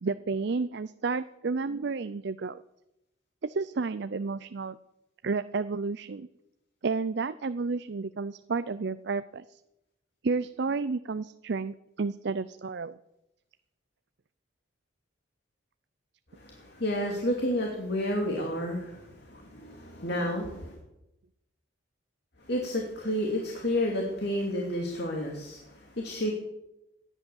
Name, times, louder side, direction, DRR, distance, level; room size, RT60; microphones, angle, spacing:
voice 1, 0.0-2.6 3.4-4.8 5.2-6.3 6.8-9.6 10.2-13.0, right 4 dB, 55° right, 13 dB, 0.5 m, -31 dB
voice 2, 16.3-20.8 22.4-26.3, left 1 dB, 55° left, 0 dB, 2.6 m, -31 dB
18.0 x 10.5 x 7.1 m, 0.90 s
head